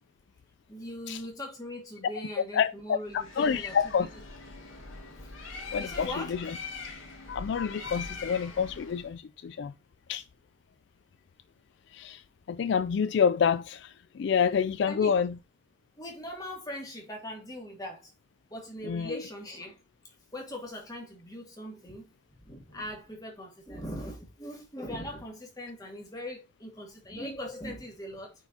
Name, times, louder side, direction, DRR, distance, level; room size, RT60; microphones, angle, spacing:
voice 1, 0.7-4.1 5.1-5.3 5.8-6.3 14.9-15.2 16.0-18.1 18.5-19.8 20.0-22.1 22.4-28.3, left 1 dB, 20° left, 2.2 m, -40 dB
voice 2, 2.5-4.1 5.7-6.5 7.3-9.7 10.1-10.2 11.9-15.4 18.8-19.2, left 7 dB, 60° left, 0.3 m, -28 dB
Bird, 3.1-9.1, left 4 dB, 80° left, 2.2 m, -42 dB
8.9 x 4.6 x 2.8 m
head